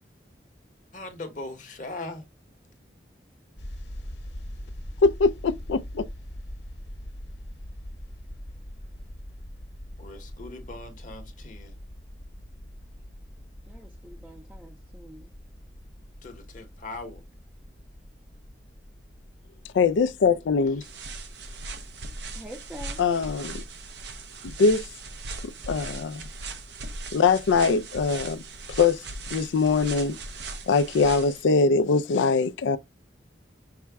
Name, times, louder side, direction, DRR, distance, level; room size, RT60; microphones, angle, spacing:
voice 1, 0.9-2.3 10.0-11.8 16.2-17.2, left 2 dB, 45° left, 0.9 m, -40 dB
sound 1, 3.6-22.7, equal, 65° left, 1.0 m, -43 dB
voice 2, 5.0-6.1 19.7-20.8 23.0-23.6 24.4-24.9 25.4-26.2 27.1-28.4 28.7-29.0 29.3-30.2 30.7-32.8, left 4 dB, 85° left, 0.4 m, -22 dB
voice 3, 13.6-15.3 22.3-23.0, equal, 5° right, 0.4 m, -45 dB
sound 2, 20.8-31.4, right 3 dB, 65° right, 0.6 m, -39 dB
5.6 x 2.1 x 3.4 m
head